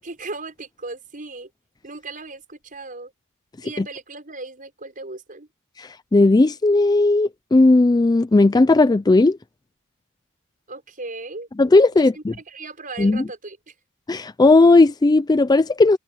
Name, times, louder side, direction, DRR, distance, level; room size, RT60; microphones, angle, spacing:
voice 1, 0.0-1.5 1.8-3.1 3.6-5.5 10.7-11.5 11.9-13.7, right 3 dB, 40° right, 6.2 m, -37 dB
voice 2, 5.8-9.4 11.6-12.3 13.0-13.2 14.1-16.0, left 2 dB, 15° left, 0.4 m, -16 dB
head